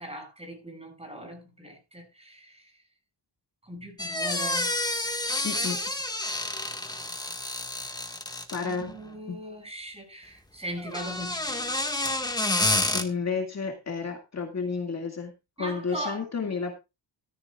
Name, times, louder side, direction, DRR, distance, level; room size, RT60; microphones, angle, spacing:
voice 1, 0.0-2.7 3.6-4.7 8.6-11.8 15.6-16.3, right 1 dB, 15° right, 7.1 m, -39 dB
sound 1, 4.0-8.8 10.8-13.0, left 2 dB, 10° left, 1.7 m, -29 dB
voice 2, 5.4-5.8 8.3-8.9 9.3-9.4 12.9-15.3 15.6-16.7, left 5 dB, 35° left, 2.2 m, -31 dB
14.5 x 13.5 x 2.4 m
cardioid pair, 120°, 44 cm